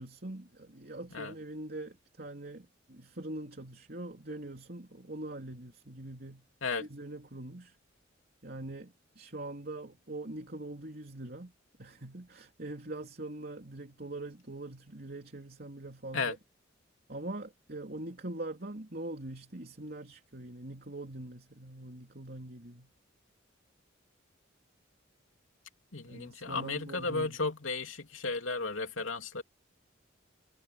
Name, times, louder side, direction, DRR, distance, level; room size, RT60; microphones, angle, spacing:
voice 1, 0.0-6.5 6.8-7.8 8.4-11.5 11.8-16.4 17.1-22.9 26.1-27.4, right 2 dB, 50° right, 3.4 m, -43 dB
voice 2, 25.9-29.4, left 3 dB, 80° left, 3.2 m, -34 dB
head